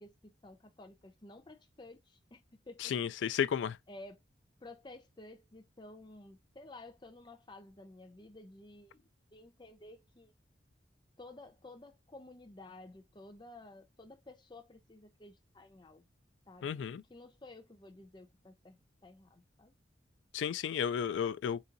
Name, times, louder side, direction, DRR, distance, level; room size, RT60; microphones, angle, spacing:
voice 1, 0.0-3.0 3.9-4.2 4.6-10.3 11.2-16.1 16.5-19.7, left 2 dB, 25° left, 0.6 m, -53 dB
voice 2, 2.8-3.8 16.6-17.0 20.3-21.6, left 8 dB, 85° left, 0.3 m, -33 dB
4.0 x 2.7 x 2.5 m
head